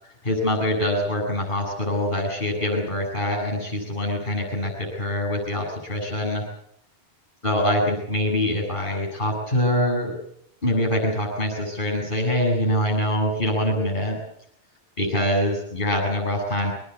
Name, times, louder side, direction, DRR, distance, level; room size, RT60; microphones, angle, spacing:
voice 1, 0.2-6.4 7.4-10.1 10.6-14.2 15.0-16.7, left 1 dB, 50° left, 1 dB, 8.0 m, -24 dB
24.5 x 19.5 x 8.4 m, 0.73 s
omnidirectional pair, 1.1 m